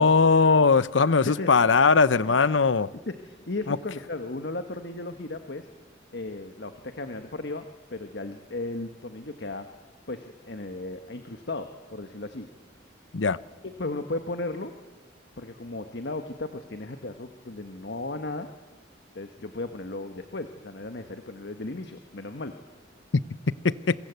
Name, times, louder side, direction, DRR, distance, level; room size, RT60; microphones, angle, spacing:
voice 1, 0.0-2.9 3.7-3.8 13.1-13.4 23.6-23.9, left 4 dB, 85° left, 17 dB, 0.8 m, -20 dB
voice 2, 3.1-5.7 6.1-9.7 10.1-12.5 13.6-14.7 15.4-18.5 19.1-22.5, left 2 dB, 65° left, 7 dB, 1.4 m, -35 dB
27.5 x 24.0 x 8.1 m, 1.3 s
head